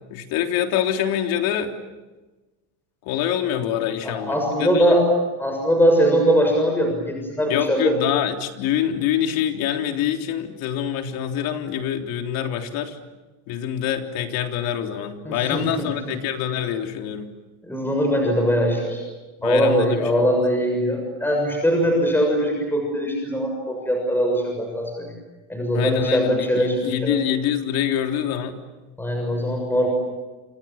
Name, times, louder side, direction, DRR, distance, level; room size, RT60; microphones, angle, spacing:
voice 1, 0.1-1.7 3.1-5.0 7.5-13.0 13.5-17.3 19.4-20.0 25.7-28.6, left 10 dB, 65° left, 4 dB, 3.6 m, -25 dB
voice 2, 4.0-5.0 5.4-8.0 15.2-16.1 17.6-19.0 19.4-25.1 25.5-27.2 29.0-29.9, equal, 5° left, 1 dB, 6.7 m, -21 dB
29.0 x 27.5 x 7.3 m, 1.2 s
cardioid pair, 145°, 37 cm